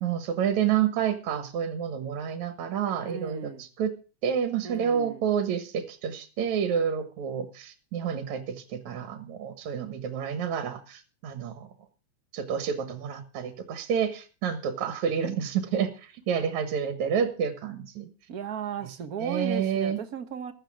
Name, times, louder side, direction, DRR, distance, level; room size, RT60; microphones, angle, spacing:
voice 1, 0.0-3.9 4.2-11.7 12.3-18.1 19.2-20.0, right 8 dB, 75° right, 2.9 m, -29 dB
voice 2, 3.1-3.6 4.6-5.2 18.3-20.5, right 7 dB, 45° right, 1.2 m, -36 dB
15.0 x 13.0 x 3.6 m
omnidirectional pair, 3.4 m